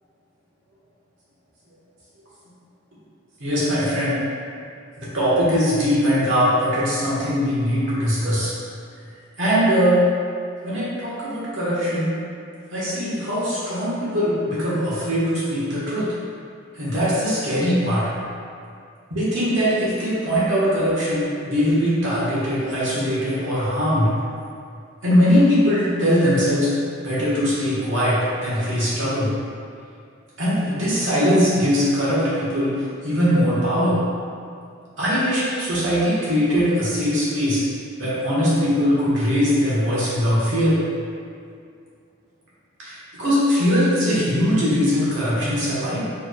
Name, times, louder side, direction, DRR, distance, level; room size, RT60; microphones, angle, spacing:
voice 1, 3.4-4.2 5.0-8.5 9.4-10.0 10.6-12.1 12.7-16.1 16.7-18.1 19.1-24.1 25.0-26.7 27.0-29.3 30.4-32.7 33.0-34.0 35.0-37.6 38.0-40.7 42.8-46.0, equal, 75° right, -9 dB, 1.5 m, -21 dB
4.6 x 3.5 x 2.4 m, 2.4 s
head